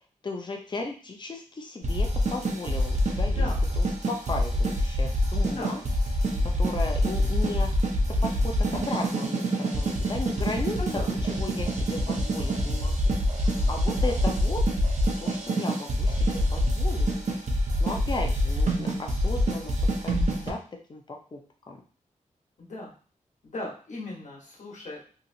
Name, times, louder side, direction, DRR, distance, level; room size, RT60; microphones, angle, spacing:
voice 1, 0.2-3.5 3.8-5.8 6.6-7.7 8.1-10.8 11.2-13.0 13.7-14.6 15.2-17.1 17.8-19.8 20.0-20.6 20.9-21.4 21.7-21.8, left 3 dB, 35° left, 2 dB, 0.6 m, -35 dB
sound 1, 1.8-20.5, equal, 60° right, 0.7 m, -26 dB
voice 2, 5.4-5.8 10.8-11.1 22.6-22.9 23.4-25.0, left 2 dB, 60° left, -3 dB, 1.2 m, -37 dB
3.0 x 2.9 x 2.7 m, 0.40 s
wide cardioid pair, 145°, 14 cm